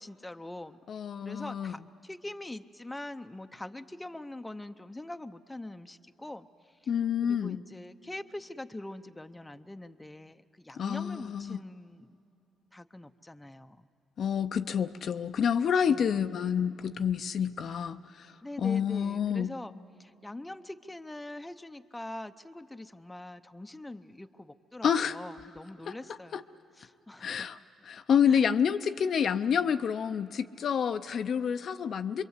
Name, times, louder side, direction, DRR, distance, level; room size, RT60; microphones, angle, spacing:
voice 1, 0.0-0.8 1.2-6.5 6.8-6.9 7.2-12.2 12.7-13.9 15.9-16.1 18.4-19.7 20.0-26.4 26.8-27.5 28.3-28.4, left 1 dB, 10° left, 9 dB, 0.7 m, -43 dB
voice 2, 0.9-1.7 6.9-7.6 10.8-11.6 14.2-18.3 18.6-19.5 24.8-25.2 25.9-26.0 26.3-26.4 27.2-27.6 27.8-32.2, left 7 dB, 60° left, 10 dB, 0.6 m, -28 dB
26.0 x 22.5 x 8.2 m, 2.8 s
cardioid pair, 90°, 0 cm